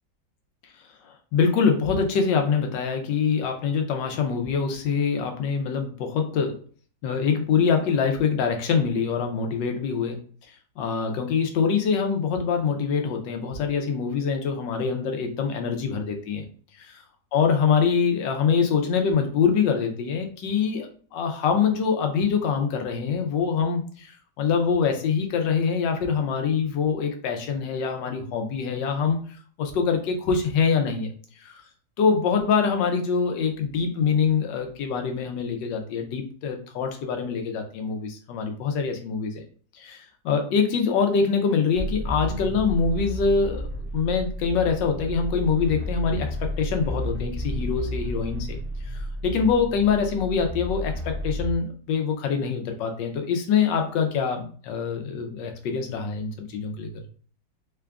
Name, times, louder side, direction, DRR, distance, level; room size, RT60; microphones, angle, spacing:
voice 1, 1.0-6.6 7.0-10.2 10.8-16.5 17.3-29.2 29.6-31.1 31.4-31.6 32.0-39.4 39.7-48.6 48.9-56.9, left 6 dB, 85° left, 4 dB, 1.4 m, -24 dB
sound 1, 41.8-51.6, equal, 55° right, 0.6 m, -31 dB
3.7 x 2.4 x 3.4 m, 0.44 s
omnidirectional pair, 1.9 m